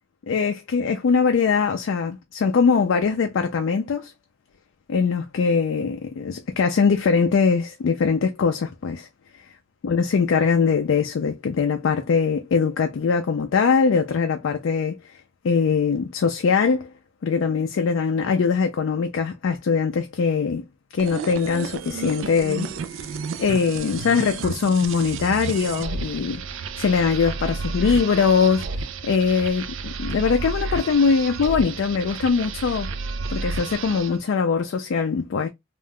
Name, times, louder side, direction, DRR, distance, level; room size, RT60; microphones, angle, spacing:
voice 1, 0.3-4.1 4.9-9.1 9.8-15.0 15.4-16.9 17.2-20.6 20.9-22.7 23.0-26.4 26.8-32.9 33.3-35.5, left 5 dB, 70° left, 0.4 m, -22 dB
sound 1, 21.0-34.2, right 4 dB, 75° right, 0.4 m, -31 dB
2.5 x 2.2 x 3.3 m
head